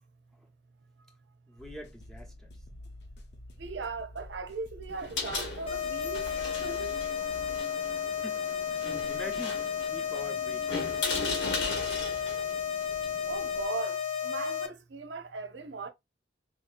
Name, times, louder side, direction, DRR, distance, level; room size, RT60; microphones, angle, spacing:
voice 1, 1.5-2.6 8.1-8.8 9.1-9.6 9.9-11.4, left 1 dB, 5° left, 0.8 m, -45 dB
sound 1, 1.6-7.6, left 1 dB, 65° left, 0.9 m, -48 dB
voice 2, 3.6-6.3 6.6-7.0 13.3-15.9, right 4 dB, 75° right, 0.7 m, -38 dB
sound 2, 4.9-13.6, left 3 dB, 80° left, 1.5 m, -38 dB
sound 3, 5.7-14.7, left 8 dB, 30° left, 0.7 m, -33 dB
4.2 x 2.8 x 2.5 m
head